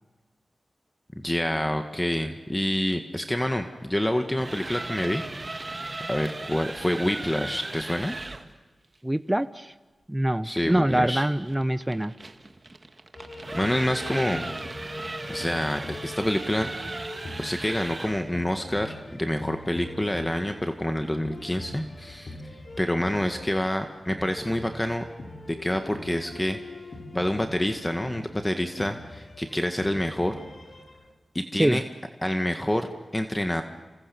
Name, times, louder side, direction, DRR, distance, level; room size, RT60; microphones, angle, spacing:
voice 1, 1.2-5.2 6.1-8.2 10.4-11.3 13.5-14.5 15.3-16.7 17.4-22.4 22.8-25.0 25.5-26.6 27.1-30.4 31.3-31.8 32.2-33.6, left 1 dB, 15° left, 6 dB, 1.9 m, -27 dB
sound 1, 4.2-8.5 11.1-18.3, right 2 dB, 40° right, 2.1 m, -37 dB
voice 2, 9.0-9.7 10.1-12.1 31.6-31.8, right 1 dB, 15° right, 12 dB, 0.9 m, -24 dB
sound 2, 13.1-31.1, left 1 dB, 60° left, 4.5 m, -41 dB
28.5 x 27.5 x 7.2 m, 1.2 s
cardioid pair, 45°, 0 cm